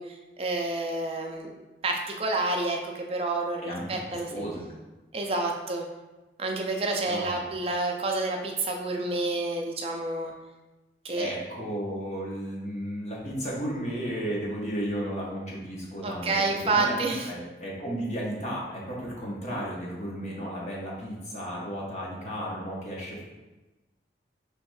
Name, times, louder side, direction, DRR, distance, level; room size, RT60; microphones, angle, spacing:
voice 1, 0.0-1.5 1.8-4.5 5.1-5.9 6.4-10.3 11.0-11.3 16.0-17.3, right 2 dB, 30° right, 2 dB, 0.5 m, -29 dB
voice 2, 4.3-4.7 7.1-7.4 11.1-16.3 16.6-16.9 17.3-23.2, equal, 40° left, -4 dB, 1.0 m, -34 dB
3.4 x 3.2 x 4.7 m, 1.1 s
head